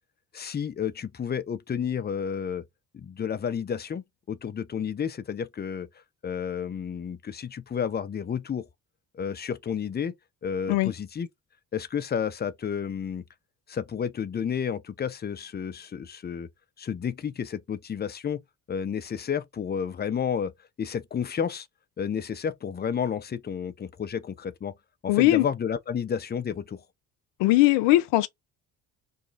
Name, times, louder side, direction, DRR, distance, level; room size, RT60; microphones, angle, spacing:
voice 1, 0.3-2.6 2.9-5.9 6.2-8.7 9.1-10.2 10.4-11.3 11.7-13.2 13.7-16.5 16.8-18.4 18.7-20.5 20.8-21.7 22.0-24.7 25.0-26.8, left 7 dB, 20° left, 0.5 m, -31 dB
voice 2, 25.1-25.5 27.4-28.3, left 17 dB, 70° left, 0.7 m, -20 dB
3.2 x 2.3 x 3.9 m
hypercardioid pair, 55°, 45 cm